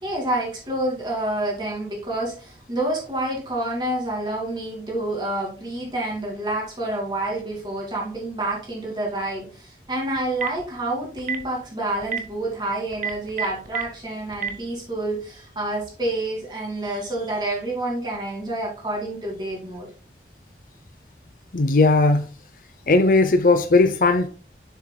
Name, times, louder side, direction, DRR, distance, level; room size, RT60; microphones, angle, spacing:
voice 1, 0.0-19.9, right 1 dB, 25° right, 2.5 m, -28 dB
Telephone, 10.2-10.6 11.2-11.4 12.0-12.2 12.9-13.8 14.3-14.5, right 7 dB, 45° right, 0.8 m, -26 dB
voice 2, 21.5-22.3 22.9-24.3, left 3 dB, 50° left, 0.6 m, -17 dB
7.2 x 7.1 x 2.3 m
head